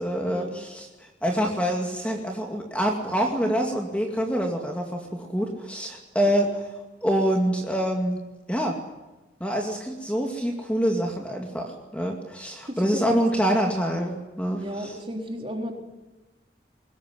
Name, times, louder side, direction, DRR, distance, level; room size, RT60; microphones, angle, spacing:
voice 1, 0.0-6.5 7.0-8.2 8.5-8.8 9.4-14.9, equal, 5° left, 2 dB, 2.4 m, -26 dB
voice 2, 12.7-13.3 14.6-15.7, equal, 30° right, 2 dB, 3.8 m, -34 dB
23.0 x 20.0 x 9.4 m, 1.1 s
head